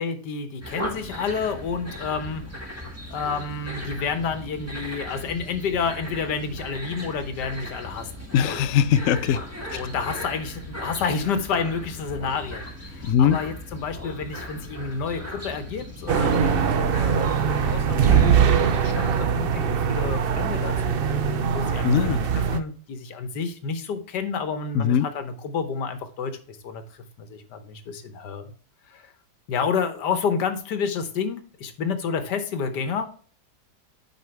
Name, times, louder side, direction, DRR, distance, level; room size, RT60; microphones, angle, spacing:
voice 1, 0.0-2.5 3.1-8.2 8.5-8.7 9.7-22.2 22.5-28.5 28.9-29.1 29.5-33.1, left 5 dB, 85° left, 1.6 m, -30 dB
sound 1, 0.6-19.2, equal, 10° right, 1.3 m, -37 dB
voice 2, 8.3-9.4 13.0-13.4 21.8-22.2 24.7-25.1, left 9 dB, 70° left, 0.8 m, -20 dB
sound 2, 16.1-22.6, right 7 dB, 75° right, 0.5 m, -22 dB
8.1 x 5.2 x 3.3 m
omnidirectional pair, 1.8 m